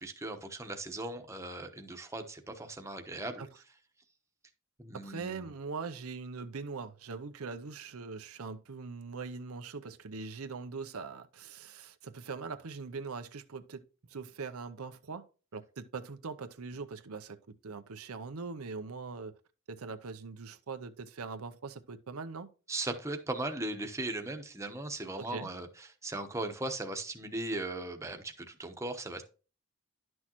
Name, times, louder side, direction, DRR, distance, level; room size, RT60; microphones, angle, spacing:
voice 1, 0.0-3.5 4.8-5.5 22.7-29.2, right 2 dB, 15° right, 1.0 m, -38 dB
voice 2, 4.9-13.8 14.1-15.3 15.5-19.3 19.7-22.5 25.2-25.5, right 4 dB, 85° right, 0.7 m, -42 dB
11.0 x 6.2 x 3.0 m
head